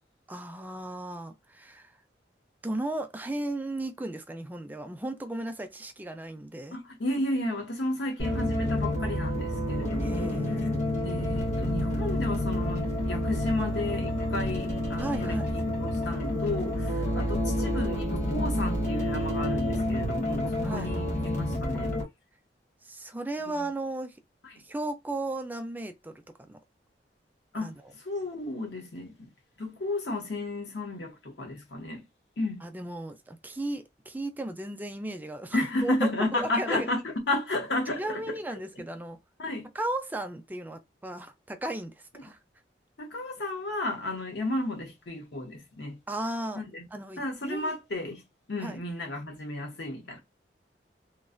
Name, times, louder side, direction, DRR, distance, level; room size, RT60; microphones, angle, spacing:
voice 1, 0.3-1.9 2.6-6.8 10.0-10.7 15.0-15.5 20.6-20.9 22.8-24.2 24.6-26.6 27.6-27.7 32.6-36.9 37.9-39.2 39.7-42.4 46.1-46.6 46.9-47.7 48.6-48.8, right 1 dB, 10° right, 0.4 m, -35 dB
voice 2, 6.7-10.6 11.0-21.9 23.5-23.7 24.4-24.6 27.5-29.3 29.6-32.0 32.4-32.6 35.5-38.8 39.4-39.7 42.1-42.3 43.0-46.0 46.5-46.9 47.2-48.2 48.5-50.2, left 2 dB, 70° left, 1.0 m, -33 dB
sound 1, 8.2-22.0, left 1 dB, 45° left, 1.2 m, -29 dB
3.1 x 2.1 x 2.4 m
head